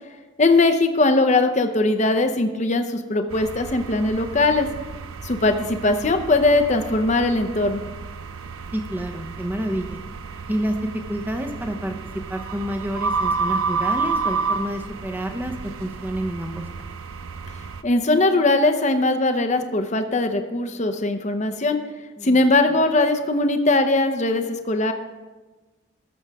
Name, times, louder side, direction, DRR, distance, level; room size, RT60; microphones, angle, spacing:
voice 1, 0.4-4.7 5.2-7.8 17.8-21.8 22.2-24.9, left 2 dB, 35° left, 7 dB, 0.7 m, -20 dB
sound 1, 3.3-17.8, right 4 dB, 80° right, 0.5 m, -31 dB
voice 2, 8.7-10.0 10.5-10.8 11.1-12.0 12.3-16.7 22.2-22.4, right 1 dB, 10° right, 5 dB, 0.8 m, -29 dB
18.0 x 7.2 x 3.5 m, 1.2 s
head